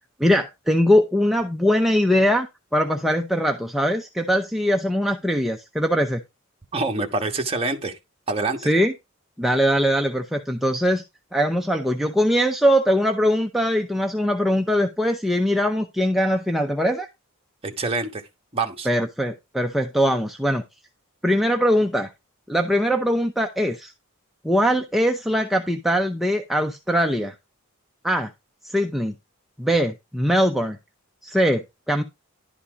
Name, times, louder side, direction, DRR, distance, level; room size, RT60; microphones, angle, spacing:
voice 1, 0.2-6.2 8.6-8.9 9.4-11.0 11.3-17.1 18.9-20.6 21.2-22.1 22.5-23.9 24.4-27.3 28.0-28.3 28.6-29.1 29.6-30.8 31.2-32.0, equal, ahead, 0.6 m, -21 dB
voice 2, 6.7-8.0 8.3-8.6 17.6-18.2 18.5-18.9, right 3 dB, 25° right, 1.3 m, -25 dB
11.5 x 4.2 x 5.0 m
head